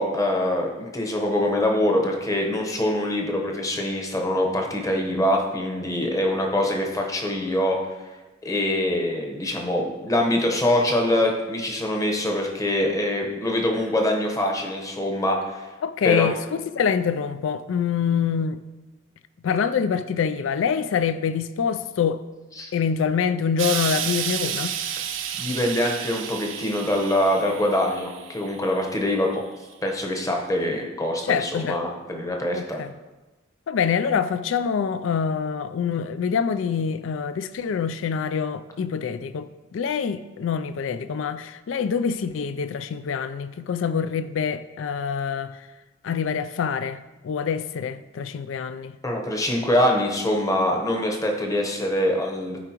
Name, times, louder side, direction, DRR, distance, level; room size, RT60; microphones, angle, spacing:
voice 1, 0.0-7.8 8.4-15.7 16.0-16.3 22.6-22.7 25.4-29.4 29.8-32.8 49.0-52.6, left 1 dB, 20° left, 1.0 m, -24 dB
voice 2, 15.8-16.4 16.7-18.6 19.4-22.2 22.7-24.7 31.3-31.8 32.5-32.9 33.7-45.7 46.0-48.9, left 7 dB, 85° left, 0.4 m, -25 dB
Explosion, 23.6-28.9 29.7-29.8, right 9 dB, 85° right, 0.6 m, -31 dB
12.5 x 4.9 x 3.0 m
head